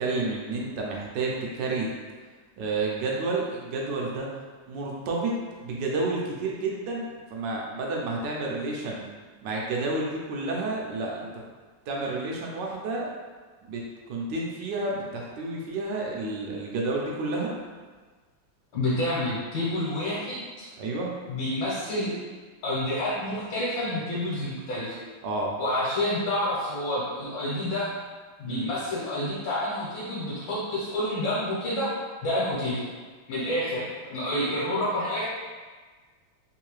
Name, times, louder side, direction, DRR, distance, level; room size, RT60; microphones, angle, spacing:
voice 1, 0.0-1.9 2.6-4.3 4.7-5.3 5.6-9.0 9.4-11.4 11.9-13.1 13.6-13.8 14.1-17.5 20.8-21.1 25.2-25.5 28.5-28.7, right 3 dB, 70° right, -2 dB, 1.1 m, -30 dB
voice 2, 18.7-20.7 21.3-22.1 22.6-25.0 25.6-27.9 28.4-32.0 32.2-32.8 33.3-35.3, left 1 dB, 70° left, -8 dB, 1.5 m, -28 dB
3.5 x 2.7 x 3.1 m, 1.4 s
omnidirectional pair, 2.4 m